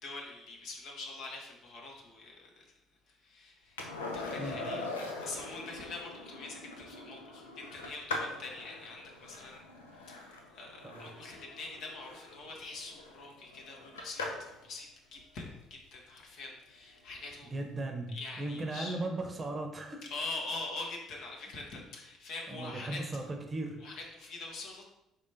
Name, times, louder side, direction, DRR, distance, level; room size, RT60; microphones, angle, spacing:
voice 1, 0.0-2.7 3.1-9.6 9.9-17.5 18.1-19.0 20.1-23.0 23.8-24.8, left 3 dB, 65° left, -1 dB, 1.1 m, -44 dB
Skateboard, 3.8-14.6 17.2-17.3, left 2 dB, 90° left, 0.5 m, -42 dB
voice 2, 17.5-18.1 18.4-20.0 22.5-23.8, right 2 dB, 30° right, 4 dB, 0.8 m, -37 dB
4.9 x 3.5 x 2.8 m, 0.91 s
hypercardioid pair, 55°, 0 cm